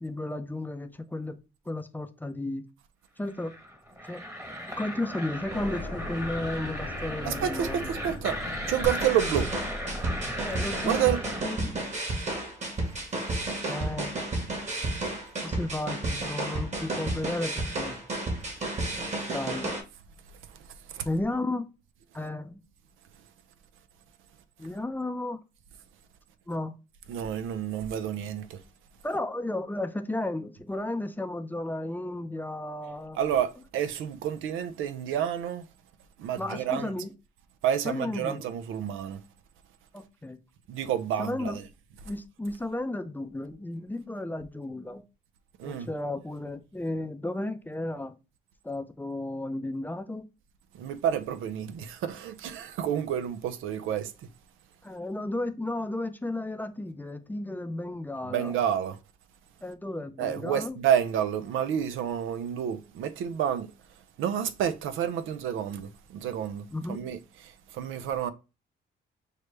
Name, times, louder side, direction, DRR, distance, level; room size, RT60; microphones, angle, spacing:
voice 1, 0.0-1.4 1.7-2.6 3.2-3.5 4.0-4.2 4.8-7.8 10.4-11.2 11.4-11.8 13.7-14.1 15.4-18.0 19.3-19.7 21.1-21.6 22.1-22.6 24.6-25.4 26.5-26.7 29.0-33.2 36.4-37.1 37.8-38.4 39.9-40.4 41.2-41.6 42.0-45.0 45.6-48.1 48.6-50.2 54.8-58.5 59.6-60.8 66.7-67.0, left 2 dB, 10° left, 0.5 m, -33 dB
sound 1, 3.3-11.4, equal, 15° right, 1.1 m, -37 dB
sound 2, 5.5-11.5, left 2 dB, 70° left, 0.9 m, -41 dB
voice 2, 7.2-8.4 8.7-9.5 10.8-11.2 20.9-21.1 27.1-28.6 33.2-35.6 36.2-36.9 37.6-39.2 40.7-41.6 45.6-45.9 50.7-54.1 58.3-59.0 60.2-63.7 64.2-67.2 67.7-68.3, right 9 dB, 85° right, 0.5 m, -29 dB
sound 3, 8.8-19.8, right 2 dB, 35° right, 1.4 m, -32 dB
6.3 x 2.2 x 3.2 m
cardioid pair, 90°, 20 cm